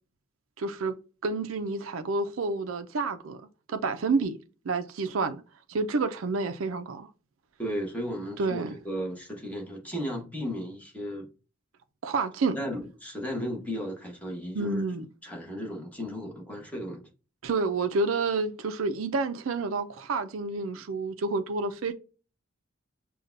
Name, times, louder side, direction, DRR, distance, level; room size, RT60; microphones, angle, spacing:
voice 1, 0.6-0.9 1.2-3.4 3.7-4.4 4.6-5.4 5.7-7.1 8.4-8.8 12.0-12.6 14.6-15.1 17.4-21.9, right 3 dB, 85° right, 0.5 m, -29 dB
voice 2, 7.6-11.3 12.5-14.8 15.2-17.0, equal, 10° left, 1.2 m, -35 dB
6.5 x 2.3 x 2.6 m
head